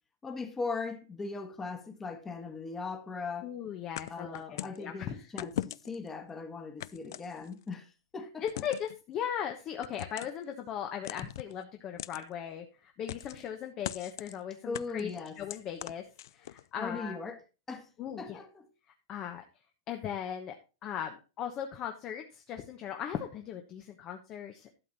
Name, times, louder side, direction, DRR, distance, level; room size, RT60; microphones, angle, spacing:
voice 1, 0.2-3.5 4.1-8.4 14.7-15.4 16.8-17.9 18.2-18.7, left 4 dB, 15° left, 1.5 m, -39 dB
voice 2, 3.4-5.2 8.4-15.1 15.4-16.0 16.3-17.2 18.0-18.4 19.1-19.4 19.9-20.5 20.8-24.8, left 9 dB, 30° left, 1.1 m, -38 dB
sound 1, 4.0-4.8 5.4-6.1 6.8-7.7 8.5-8.9 9.8-10.4 11.0-11.5 12.0-12.2 13.1-13.5 13.8-14.4 14.7-16.6, left 13 dB, 65° left, 0.4 m, -40 dB
12.0 x 6.6 x 4.1 m
hypercardioid pair, 140°, 2 cm